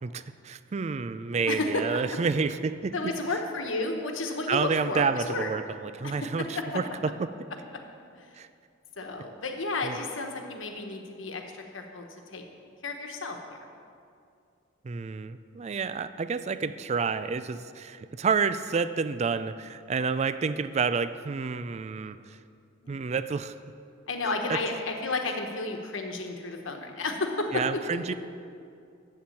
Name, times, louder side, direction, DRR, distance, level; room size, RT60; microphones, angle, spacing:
voice 1, 0.0-2.9 4.5-7.5 8.4-8.5 9.8-10.0 14.8-22.2 22.9-23.5 24.5-24.6 27.5-28.1, right 5 dB, 35° right, 13 dB, 0.3 m, -29 dB
voice 2, 1.5-2.0 2.9-5.5 6.0-6.5 8.1-8.3 9.0-12.0 12.3-12.4 12.8-13.6 22.8-23.0 24.1-27.6, left 2 dB, 80° left, 3 dB, 1.2 m, -32 dB
7.7 x 7.2 x 8.5 m, 2.4 s
head